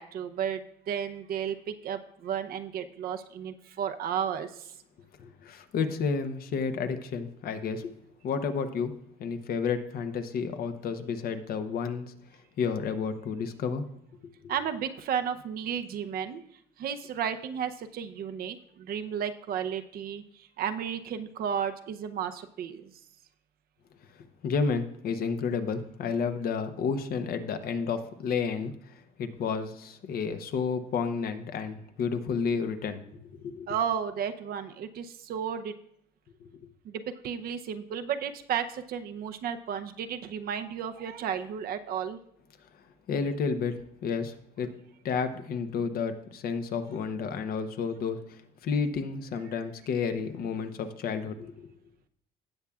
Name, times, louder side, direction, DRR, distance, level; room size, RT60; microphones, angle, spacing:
voice 1, 0.0-4.7 14.5-16.4 16.8-22.9 33.7-35.7 36.8-42.2 46.9-47.1, right 8 dB, 65° right, 9 dB, 0.7 m, -33 dB
voice 2, 5.2-7.9 8.2-12.1 12.6-13.9 14.4-14.5 24.4-33.7 36.4-36.5 43.1-44.7 45.0-51.5, left 5 dB, 60° left, 8 dB, 0.9 m, -31 dB
17.0 x 7.1 x 2.4 m, 0.71 s
cardioid pair, 110°, 17 cm